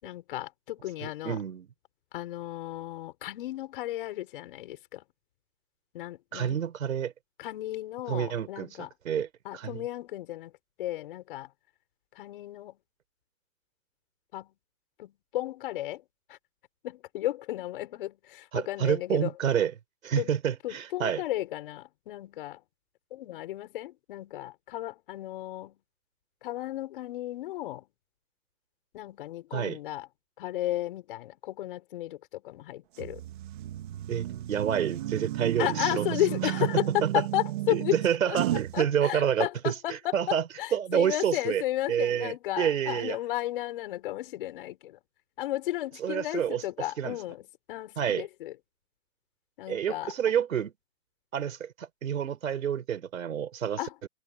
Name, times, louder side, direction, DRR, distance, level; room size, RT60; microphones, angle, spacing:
voice 1, 0.0-1.4 2.1-5.0 5.9-6.6 7.4-8.9 9.5-10.5 10.8-11.5 12.2-12.8 14.3-14.5 15.0-16.0 16.3-16.4 16.8-19.3 20.2-20.3 20.6-22.6 23.1-25.8 26.4-27.9 28.9-30.1 30.4-33.2 35.6-38.0 38.2-38.4 38.7-40.1 40.6-45.0 45.4-47.4 47.7-48.5 49.6-50.1 53.8-53.9, left 15 dB, 35° left, 7.2 m, -33 dB
voice 2, 1.0-1.7 6.3-7.1 8.1-9.3 9.5-9.9 18.5-19.7 20.0-21.2 29.5-29.8 34.1-36.1 36.4-37.2 37.7-40.4 40.7-41.6 41.9-43.2 46.0-46.6 47.0-47.2 48.0-48.3 49.7-50.7 51.3-54.1, right 9 dB, 60° right, 4.9 m, -29 dB
sound 1, 33.0-38.8, right 14 dB, 30° right, 2.9 m, -33 dB
hypercardioid pair, 165°, 47 cm